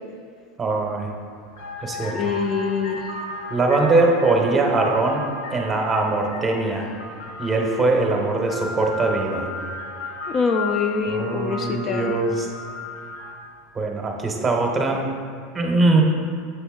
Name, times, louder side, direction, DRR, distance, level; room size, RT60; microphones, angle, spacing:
voice 1, 0.6-1.1 1.8-2.3 3.5-5.2 5.5-6.9 7.4-9.5 11.1-12.5 13.7-15.0 15.5-16.0, right 3 dB, 20° right, 1 dB, 0.7 m, -21 dB
sound 1, 0.9-1.1 1.5-13.6, left 2 dB, 80° left, 0.9 m, -35 dB
voice 2, 2.1-3.1 10.3-12.1, left 5 dB, 30° left, 5 dB, 0.3 m, -24 dB
6.8 x 4.0 x 3.6 m, 2.1 s
supercardioid pair, 135°, 0 cm